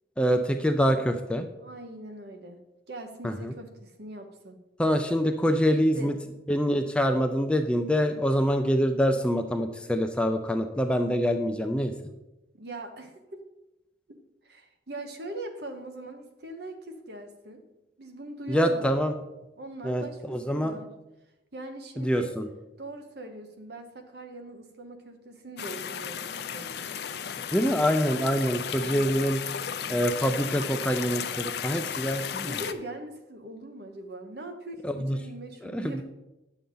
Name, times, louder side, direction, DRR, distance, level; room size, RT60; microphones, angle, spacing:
voice 1, 0.2-1.5 3.2-3.5 4.8-6.1 6.5-11.9 18.5-19.1 19.8-20.7 22.0-22.5 27.5-29.4 29.9-32.5 34.8-35.2 35.6-36.0, equal, 5° left, 6 dB, 0.4 m, -25 dB
voice 2, 1.6-2.6 2.9-4.6 5.7-6.2 12.5-13.4 14.4-17.6 18.0-18.9 19.6-20.9 21.5-22.3 22.8-26.8 28.8-29.1 32.4-36.0, right 1 dB, 60° right, 6 dB, 1.1 m, -41 dB
sound 1, 25.6-32.7, left 8 dB, 60° left, 0.5 m, -34 dB
9.6 x 6.9 x 3.9 m, 0.98 s
head